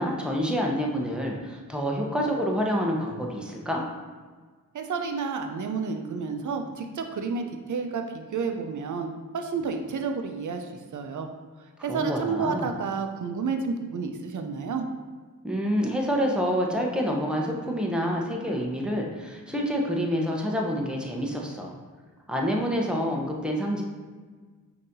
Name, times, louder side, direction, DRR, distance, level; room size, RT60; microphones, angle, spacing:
voice 1, 0.0-3.9 11.9-12.7 15.4-21.7 22.3-23.8, equal, 5° right, -1 dB, 0.7 m, -27 dB
voice 2, 4.7-11.3 11.8-14.9, right 5 dB, 60° right, 5 dB, 0.5 m, -30 dB
5.4 x 2.8 x 2.6 m, 1.4 s
cardioid pair, 50°, 34 cm